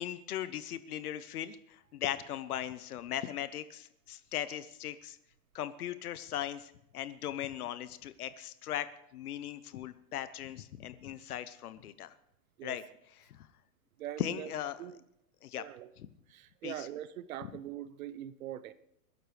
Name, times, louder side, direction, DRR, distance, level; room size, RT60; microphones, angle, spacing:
voice 1, 0.0-5.2 5.5-8.9 9.1-12.2 12.6-12.8 13.1-13.5 14.2-14.8 15.4-15.6 16.0-16.1 16.6-16.9, left 11 dB, 90° left, 13 dB, 1.0 m, -38 dB
voice 2, 14.0-14.5 14.8-15.0 15.5-15.9 16.3-18.7, right 12 dB, 70° right, 15 dB, 0.9 m, -42 dB
21.5 x 12.0 x 3.4 m, 0.77 s
supercardioid pair, 145°, 43 cm